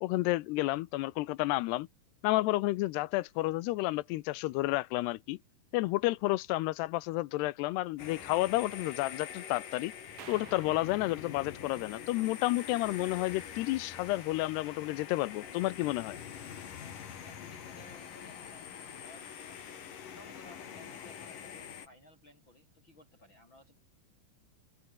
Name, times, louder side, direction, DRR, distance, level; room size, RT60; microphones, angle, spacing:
voice 1, 0.0-1.9 2.2-5.4 5.7-9.9 10.3-16.2, left 19 dB, 90° left, 2.9 m, -31 dB
sound 1, 8.0-21.9, left 8 dB, 55° left, 4.1 m, -45 dB
sound 2, 10.2-12.5, right 11 dB, 65° right, 3.4 m, -53 dB
voice 2, 17.2-19.6 20.1-23.8, left 1 dB, 30° left, 6.5 m, -58 dB
open air
omnidirectional pair, 4.6 m